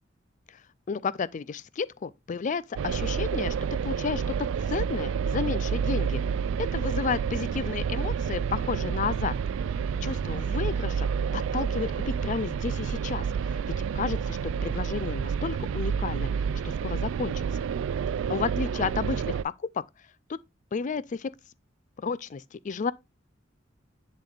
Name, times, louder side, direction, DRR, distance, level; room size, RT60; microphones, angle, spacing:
voice 1, 0.9-3.6 3.8-6.2 6.6-9.4 10.0-11.1 11.3-17.7 18.3-19.8 20.3-20.4 20.7-21.3 22.0-22.9, left 5 dB, 40° left, 0.4 m, -32 dB
sound 1, 2.8-19.4, right 7 dB, 85° right, 0.3 m, -29 dB
10.5 x 4.1 x 2.4 m
head